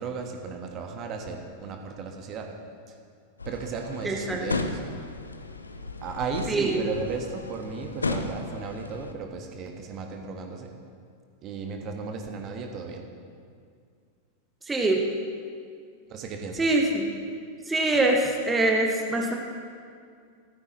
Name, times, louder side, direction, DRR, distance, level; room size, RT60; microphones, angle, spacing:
voice 1, 0.0-2.5 2.9-3.0 3.4-4.8 6.0-10.7 11.4-13.1 16.1-16.7, right 5 dB, 35° right, 3 dB, 1.4 m, -35 dB
sound 1, 3.4-9.1, left 3 dB, 80° left, 0.7 m, -35 dB
voice 2, 4.0-4.4 6.5-6.8 14.7-15.0 16.6-17.1 17.7-19.3, right 2 dB, 10° right, 0 dB, 1.3 m, -24 dB
16.5 x 14.0 x 3.1 m, 2.2 s
figure-of-eight pair, 90°, 0 cm